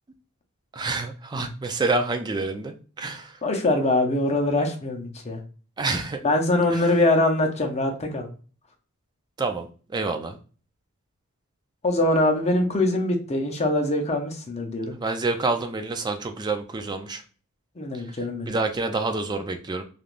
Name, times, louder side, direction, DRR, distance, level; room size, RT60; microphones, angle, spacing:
voice 1, 0.7-3.4 5.8-6.2 6.7-6.9 9.4-10.4 15.0-17.2 17.9-18.0 18.5-19.8, right 3 dB, 20° right, 7 dB, 0.3 m, -28 dB
voice 2, 3.4-5.4 6.2-8.3 11.8-14.9 17.8-18.5, left 2 dB, 30° left, 2 dB, 0.6 m, -23 dB
3.3 x 2.4 x 2.4 m, 0.38 s
head